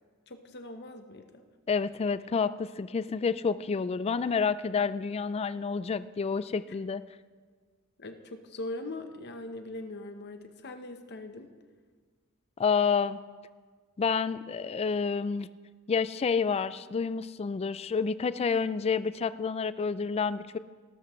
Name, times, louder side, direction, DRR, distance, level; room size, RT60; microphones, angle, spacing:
voice 1, 0.3-1.4 6.7-6.8 8.0-11.5, left 2 dB, 50° left, 7 dB, 0.9 m, -41 dB
voice 2, 1.7-7.0 12.6-13.2 14.0-15.5 15.9-20.6, left 5 dB, 30° left, 15 dB, 0.3 m, -29 dB
18.5 x 12.5 x 3.1 m, 1.5 s
head